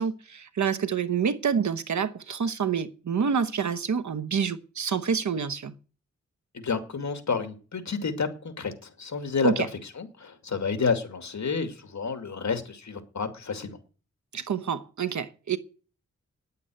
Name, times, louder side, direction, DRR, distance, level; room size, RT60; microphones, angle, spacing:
voice 1, 0.0-5.7 9.4-9.7 14.3-15.6, right 6 dB, 75° right, 1.1 m, -27 dB
voice 2, 6.5-13.8, left 5 dB, 75° left, 2.3 m, -30 dB
10.0 x 8.3 x 9.3 m
wide cardioid pair, 95°, 29 cm